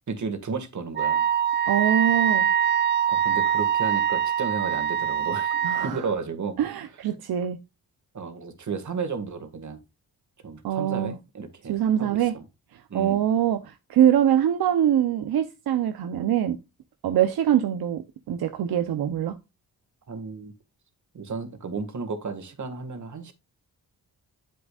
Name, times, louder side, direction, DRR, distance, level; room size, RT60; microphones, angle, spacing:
voice 1, 0.1-1.2 3.1-5.5 5.8-6.6 8.1-9.8 10.4-12.4 12.9-13.3 20.1-20.5 21.1-23.3, right 5 dB, 50° right, 1.9 m, -33 dB
Wind instrument woodwind instrument, 1.0-5.9, right 9 dB, 30° right, 0.5 m, -23 dB
voice 2, 1.7-2.5 5.6-6.0 6.6-7.6 10.6-11.2 11.7-12.4 12.9-16.6 17.0-19.4, right 10 dB, 80° right, 0.8 m, -23 dB
8.5 x 7.8 x 2.4 m
cardioid pair, 75°, 37 cm